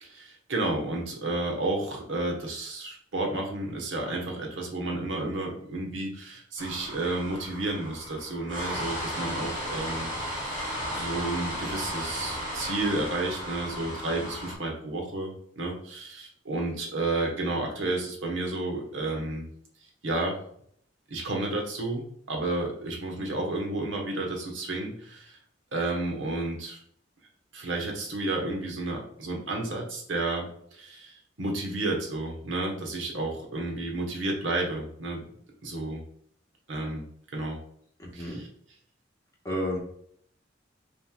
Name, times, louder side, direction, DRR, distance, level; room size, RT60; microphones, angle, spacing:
voice 1, 0.0-19.5 20.0-20.4 21.1-25.4 25.7-26.8 27.5-35.2 35.6-36.0 36.7-37.1 37.3-37.6 38.1-38.5, right 2 dB, 80° right, 0 dB, 1.1 m, -31 dB
sound 1, 6.6-14.5, equal, 45° right, 1.3 m, -35 dB
voice 2, 38.0-38.4 39.4-39.8, equal, 15° left, -2 dB, 1.2 m, -31 dB
5.6 x 3.3 x 2.3 m, 0.64 s
head